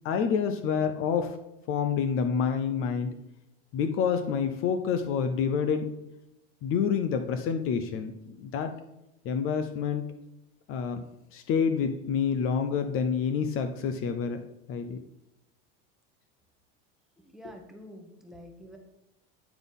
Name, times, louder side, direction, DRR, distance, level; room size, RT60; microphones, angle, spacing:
voice 1, 0.0-1.4 1.7-3.2 3.7-5.9 6.6-8.7 9.2-10.1 10.7-11.0 11.3-14.4 14.7-15.0 17.4-17.5, left 6 dB, 45° left, 8 dB, 0.7 m, -28 dB
voice 2, 17.2-18.8, equal, ahead, 2 dB, 1.1 m, -47 dB
9.3 x 4.1 x 5.4 m, 0.87 s
supercardioid pair, 140°, 30 cm